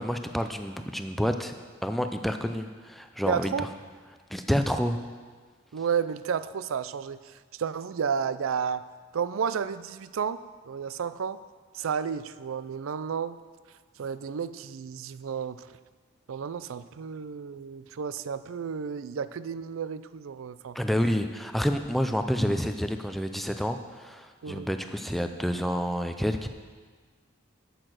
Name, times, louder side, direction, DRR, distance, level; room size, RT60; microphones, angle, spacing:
voice 1, 0.0-1.5 1.8-3.7 4.3-5.0 20.7-26.5, equal, ahead, 7 dB, 0.4 m, -29 dB
voice 2, 3.3-3.7 5.7-7.2 7.5-8.8 9.1-10.4 10.7-11.4 11.7-13.4 14.0-15.7 16.3-20.8 24.4-24.7, right 7 dB, 85° right, 14 dB, 0.4 m, -32 dB
8.8 x 8.0 x 6.3 m, 1.6 s
head